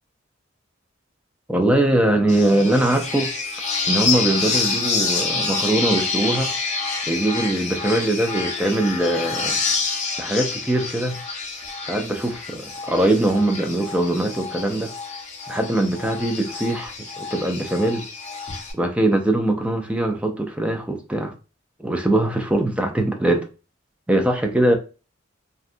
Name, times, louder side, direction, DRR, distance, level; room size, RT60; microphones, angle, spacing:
voice 1, 1.5-3.3 3.9-6.5 7.1-9.6 10.2-11.2 11.9-14.9 15.5-18.0 18.7-21.3 21.8-23.5 24.1-24.8, right 1 dB, 5° right, 0.3 m, -21 dB
sound 1, 2.3-18.7, left 4 dB, 35° left, 0.7 m, -27 dB
2.7 x 2.2 x 2.5 m
head